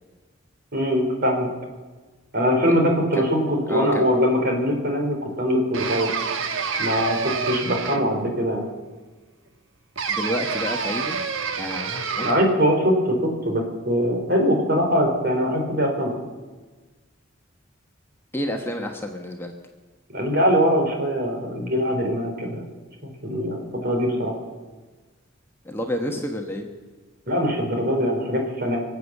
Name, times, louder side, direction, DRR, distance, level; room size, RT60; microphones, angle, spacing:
voice 1, 0.7-1.5 2.3-6.1 6.8-8.6 12.2-16.1 20.1-22.6 23.0-24.4 27.3-28.8, equal, 50° right, 2 dB, 3.6 m, -22 dB
voice 2, 3.7-4.1 10.1-11.2 11.6-12.4 18.3-19.5 25.6-26.7, equal, 10° left, 2 dB, 1.1 m, -29 dB
sound 1, 5.7-8.3 10.0-12.6, right 5 dB, 80° right, 1.2 m, -28 dB
24.0 x 8.1 x 7.2 m, 1.3 s
head